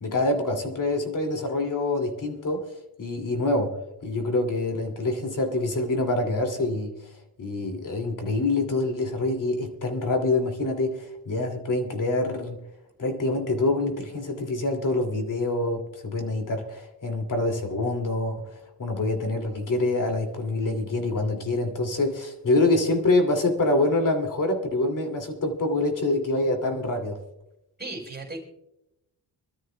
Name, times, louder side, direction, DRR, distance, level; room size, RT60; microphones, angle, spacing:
voice 1, 0.0-2.7 3.0-3.7 4.0-7.1 7.4-12.6 13.0-27.2, left 2 dB, 45° left, 5 dB, 2.5 m, -26 dB
voice 2, 27.8-28.4, right 2 dB, 20° right, 0 dB, 4.2 m, -35 dB
25.5 x 13.0 x 2.2 m, 0.90 s
cardioid pair, 120°, 44 cm